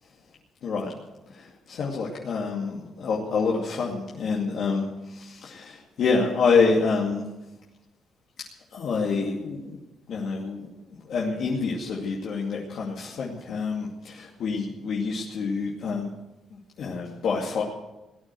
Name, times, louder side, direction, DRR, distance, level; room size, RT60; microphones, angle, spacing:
voice 1, 0.6-0.9 1.3-7.3 8.7-9.8 10.1-16.1 16.5-17.6, left 4 dB, 65° left, -3 dB, 2.4 m, -27 dB
18.5 x 9.1 x 7.7 m, 1.0 s
cardioid pair, 90°, 0 cm